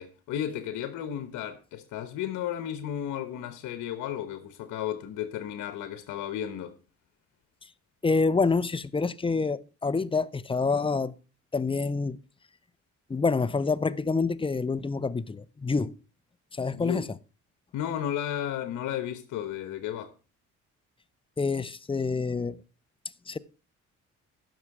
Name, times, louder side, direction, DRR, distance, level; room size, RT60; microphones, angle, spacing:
voice 1, 0.0-6.8 16.7-17.1 17.7-20.1, left 10 dB, 85° left, 1.1 m, -33 dB
voice 2, 8.0-11.1 11.5-12.2 13.1-15.9 16.5-17.0 21.4-22.6 23.3-23.4, left 4 dB, 15° left, 0.6 m, -27 dB
15.5 x 6.3 x 4.7 m
cardioid pair, 90°, 30 cm